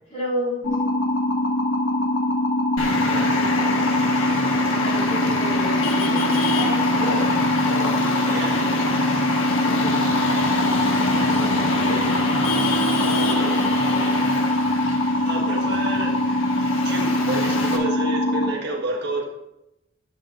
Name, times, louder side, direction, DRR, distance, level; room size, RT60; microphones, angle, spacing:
voice 1, 0.1-0.6 3.2-3.7 4.8-7.3 9.6-10.0 10.6-12.1 12.6-12.8 13.2-13.4, left 1 dB, 35° left, -6 dB, 2.7 m, -32 dB
sound 1, 0.6-18.5, left 1 dB, 60° left, 1.5 m, -22 dB
Traffic noise roadway noise, 2.8-17.8, left 2 dB, 90° left, 1.4 m, -26 dB
voice 2, 8.3-8.8 13.2-13.7 15.2-16.2 16.8-19.2, right 2 dB, 55° right, -1 dB, 1.6 m, -30 dB
11.0 x 8.0 x 2.5 m, 0.88 s
head